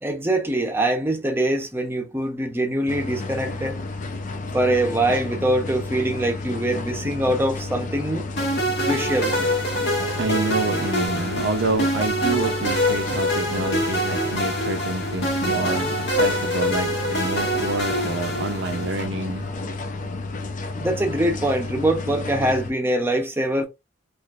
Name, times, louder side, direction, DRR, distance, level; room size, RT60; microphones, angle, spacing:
voice 1, 0.0-3.8 4.5-8.2 8.8-9.3 20.8-23.7, right 1 dB, 10° right, 0.7 m, -23 dB
sound 1, 2.9-22.7, left 3 dB, 45° left, 0.6 m, -32 dB
sound 2, 8.4-19.0, equal, 65° left, 1.2 m, -25 dB
voice 2, 10.2-19.5, right 3 dB, 70° right, 0.6 m, -28 dB
4.3 x 2.5 x 2.4 m
head